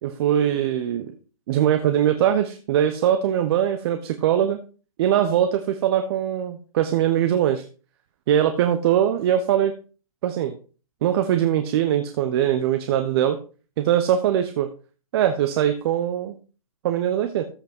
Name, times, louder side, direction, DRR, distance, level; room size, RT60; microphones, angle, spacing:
voice 1, 0.0-1.1 1.5-4.6 5.0-7.6 8.3-9.7 10.2-10.6 11.0-13.4 13.8-14.7 15.1-16.4 16.8-17.4, right 10 dB, 45° right, 8 dB, 0.9 m, -21 dB
14.0 x 5.3 x 4.5 m, 0.37 s
hypercardioid pair, 135°, 18 cm